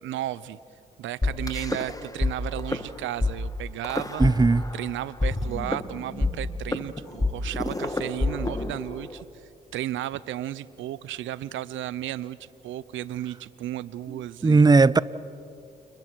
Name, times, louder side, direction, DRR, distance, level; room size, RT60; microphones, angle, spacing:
voice 1, 0.0-0.6 1.0-4.2 4.7-9.3 9.7-14.6, right 13 dB, 70° right, 0.7 m, -34 dB
sound 1, 1.2-2.3 2.6-2.8 3.2-3.3 3.8-4.8 5.2-9.2, left 2 dB, 15° left, 1.8 m, -27 dB
voice 2, 4.2-4.6 14.4-15.0, right 3 dB, 20° right, 0.7 m, -17 dB
30.0 x 29.0 x 4.7 m
hypercardioid pair, 45°, 21 cm